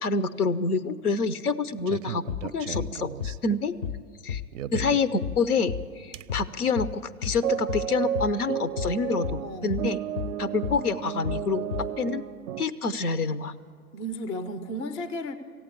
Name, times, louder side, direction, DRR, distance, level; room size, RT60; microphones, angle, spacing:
voice 1, 0.0-2.2 2.5-3.7 4.2-4.4 4.7-10.0 10.4-11.6 12.0-12.2 12.6-13.5, left 4 dB, 80° left, 13 dB, 0.8 m, -27 dB
sound 1, 1.7-3.6 4.5-5.1 6.1-6.6 6.9-7.0 7.4-12.7, right 10 dB, 60° right, 0.5 m, -33 dB
sound 2, 2.3-2.5 2.7-2.9 3.2-3.4 3.8-4.0 4.3-4.5 4.7-4.9 5.2-5.4 5.7-5.9 6.3-6.5 6.8-7.0 7.2-7.4 7.7-7.9 8.1-8.3 8.8-9.0 9.2-9.4 9.7-9.9 10.2-10.4 10.6-10.8 11.2-11.4 11.7-11.9, left 8 dB, 50° left, 0.6 m, -32 dB
voice 2, 9.4-9.8 13.9-15.3, equal, 15° left, 11 dB, 0.4 m, -34 dB
15.5 x 8.9 x 9.8 m, 2.2 s
figure-of-eight pair, 105°, 45 cm